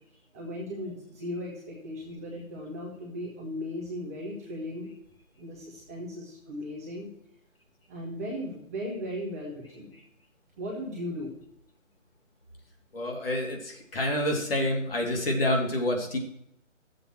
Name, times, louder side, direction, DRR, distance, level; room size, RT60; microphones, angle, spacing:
voice 1, 0.3-4.9 5.4-7.1 7.9-9.9 10.6-11.3, left 1 dB, 10° right, -5 dB, 1.1 m, -37 dB
voice 2, 12.9-16.2, left 1 dB, 45° left, 1 dB, 2.4 m, -28 dB
12.5 x 7.6 x 4.4 m, 0.77 s
figure-of-eight pair, 160°, 39 cm